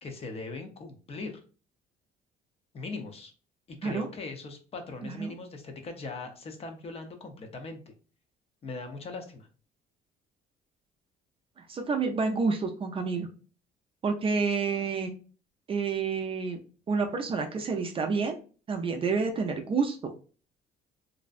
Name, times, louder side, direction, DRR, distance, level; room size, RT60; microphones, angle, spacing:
voice 1, 0.0-1.4 2.7-3.3 3.7-7.8 8.6-9.5, left 3 dB, 35° left, 5 dB, 0.6 m, -40 dB
voice 2, 11.7-13.3 14.0-15.1 15.7-16.6 16.9-18.4 18.7-20.1, right 4 dB, 35° right, 4 dB, 0.4 m, -29 dB
2.6 x 2.1 x 2.4 m, 0.37 s
cardioid pair, 110°, 17 cm